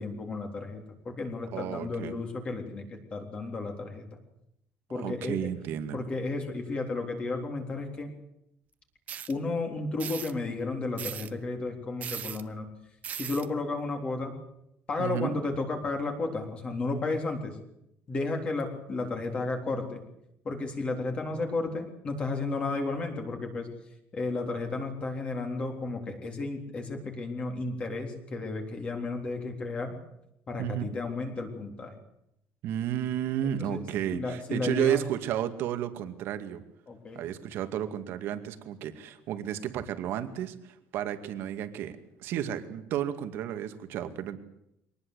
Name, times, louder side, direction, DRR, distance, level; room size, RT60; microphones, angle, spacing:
voice 1, 0.0-4.1 4.9-5.4 5.9-8.1 9.3-12.7 13.2-14.4 14.9-17.6 18.1-20.0 20.4-23.7 24.1-30.0 30.5-32.0 33.6-33.8 34.1-35.0 36.9-37.2, left 3 dB, 25° left, 3 dB, 3.7 m, -33 dB
voice 2, 1.5-2.1 4.9-6.0 15.0-15.3 30.6-30.9 32.6-36.6 37.1-44.4, right 10 dB, 60° right, 9 dB, 2.3 m, -32 dB
sound 1, 9.1-9.3 10.0-10.3 11.0-11.3 12.0-12.4 13.0-13.5, right 9 dB, 35° right, 1.2 m, -38 dB
23.5 x 19.0 x 8.3 m, 0.80 s
cardioid pair, 170°, 4 cm